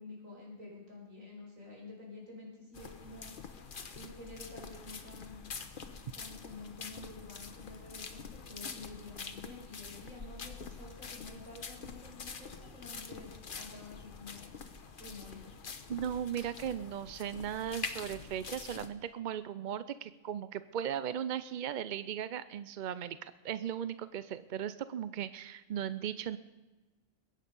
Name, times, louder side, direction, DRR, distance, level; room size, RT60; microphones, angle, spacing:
voice 1, 0.0-3.3 3.9-5.5 6.1-14.5 15.0-15.6, left 2 dB, 80° right, -3 dB, 5.6 m, -49 dB
sound 1, 2.7-18.9, left 5 dB, 45° left, 1.1 m, -46 dB
voice 2, 15.9-26.4, right 9 dB, 60° right, 14 dB, 0.5 m, -37 dB
21.5 x 9.2 x 5.4 m, 1.2 s
omnidirectional pair, 1.3 m